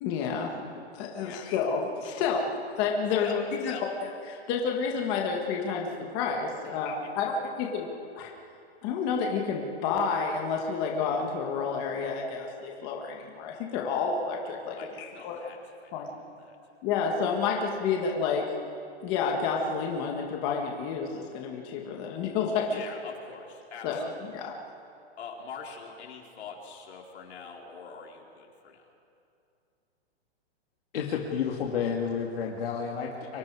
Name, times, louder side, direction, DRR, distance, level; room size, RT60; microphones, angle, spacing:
voice 1, 0.0-3.7 4.0-5.9 6.1-7.9 8.2-8.3 8.8-15.4 15.9-16.1 16.8-18.4 19.0-22.8 23.8-24.1 24.3-24.5, left 5 dB, 25° left, 0 dB, 1.7 m, -30 dB
voice 2, 3.2-3.9 6.6-7.1 14.8-16.6 22.7-24.5 25.2-28.9, left 5 dB, 80° left, 0 dB, 4.2 m, -44 dB
voice 3, 30.9-33.4, left 7 dB, 60° left, -1 dB, 2.4 m, -31 dB
30.0 x 24.0 x 4.9 m, 2.6 s
hypercardioid pair, 175°, 32 cm